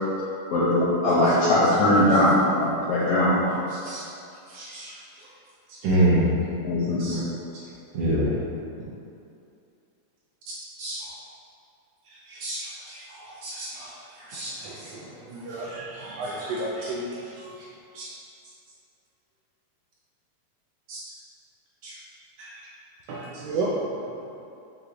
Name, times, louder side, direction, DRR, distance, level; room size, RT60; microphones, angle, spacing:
voice 1, 0.5-3.5 6.6-7.2, left 1 dB, 75° left, -8 dB, 1.5 m, -21 dB
voice 2, 4.5-4.9 5.8-6.3 7.0-7.2 7.9-8.3 10.8-11.0 12.3-13.0 13.4-13.9 14.3-14.6 16.0-16.1 16.8-16.9 18.0-18.1 20.9-21.0 21.8-21.9 22.4-22.5, right 1 dB, 70° right, -7 dB, 2.1 m, -26 dB
voice 3, 14.6-17.0 23.1-24.0, right 2 dB, 85° right, -4 dB, 1.4 m, -32 dB
5.8 x 3.3 x 2.5 m, 2.6 s
omnidirectional pair, 3.3 m